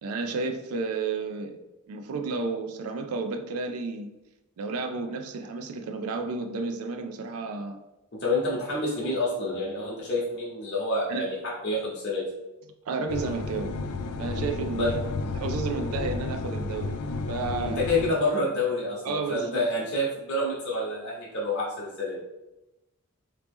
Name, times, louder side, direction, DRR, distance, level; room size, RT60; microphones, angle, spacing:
voice 1, 0.0-1.5 1.9-4.1 4.6-7.8 11.1-11.3 12.9-13.8 14.2-17.0 17.3-17.8 19.0-19.7, right 4 dB, 80° right, 5 dB, 0.4 m, -32 dB
voice 2, 8.1-12.3 14.7-14.9 17.6-22.2, left 2 dB, 50° left, -5 dB, 0.8 m, -28 dB
sound 1, 13.1-18.1, left 3 dB, 85° left, 0.3 m, -32 dB
3.0 x 2.8 x 3.4 m, 0.97 s
head